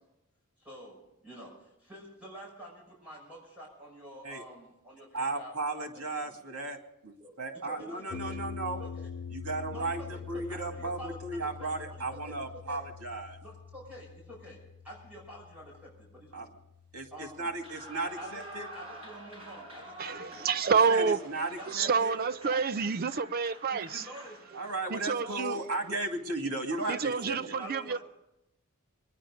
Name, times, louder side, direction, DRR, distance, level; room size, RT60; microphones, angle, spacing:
voice 1, 0.6-6.4 7.2-7.3 7.6-8.4 8.8-9.1 9.7-11.7 12.2-12.4 12.7-12.8 13.4-16.5 17.1-17.5 18.2-20.6 21.6-22.6 23.7-24.4 25.2-25.5 26.9-28.0, equal, 5° right, 6.1 m, -48 dB
voice 2, 5.1-6.8 7.0-8.8 9.3-13.4 16.3-16.5 16.9-18.7 20.9-22.1 24.5-27.4, right 2 dB, 80° right, 2.4 m, -35 dB
sound 1, 8.1-18.3, left 6 dB, 55° left, 1.2 m, -45 dB
Clapping / Cheering / Applause, 17.5-24.9, right 1 dB, 25° right, 6.1 m, -47 dB
voice 3, 20.0-21.2 21.7-24.1 24.9-25.6 26.9-28.0, right 5 dB, 45° right, 0.5 m, -28 dB
23.0 x 10.5 x 5.0 m
head